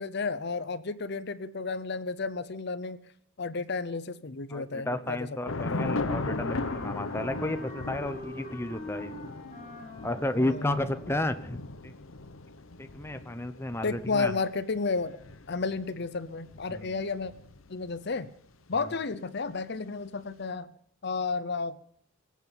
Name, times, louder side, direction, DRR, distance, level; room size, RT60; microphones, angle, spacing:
voice 1, 0.0-3.0 3.4-5.4 5.7-5.9 10.4-10.8 13.8-15.2 15.5-17.3 17.7-18.3 18.7-20.7 21.0-21.8, left 4 dB, 55° left, 14 dB, 0.7 m, -32 dB
voice 2, 4.5-9.2 10.0-11.9 12.8-14.3 16.7-17.0 18.7-18.9, left 1 dB, 10° left, 9 dB, 0.8 m, -32 dB
Thunder / Rain, 5.5-18.0, left 3 dB, 80° left, 0.9 m, -38 dB
Wind instrument woodwind instrument, 5.7-11.3, left 2 dB, 30° left, 5.7 m, -44 dB
23.0 x 8.4 x 7.2 m, 0.64 s
head